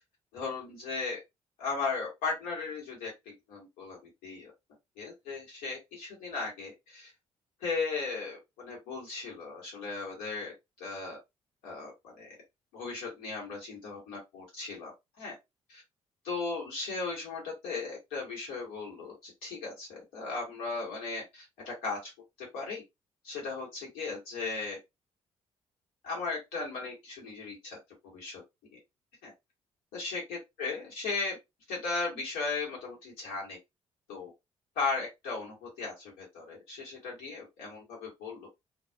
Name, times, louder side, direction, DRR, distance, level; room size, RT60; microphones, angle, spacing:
voice 1, 0.3-1.2 1.6-4.5 5.0-7.1 7.6-11.2 11.6-12.3 12.7-15.3 15.7-15.8 16.2-22.1 22.4-22.8 23.2-24.8 26.0-27.8 28.1-28.4 28.7-28.8 29.2-29.3 29.9-31.4 31.7-33.6 34.1-34.3 34.7-38.5, left 4 dB, 75° left, 1.3 m, -37 dB
2.4 x 2.4 x 2.2 m
hypercardioid pair, 45°, 15 cm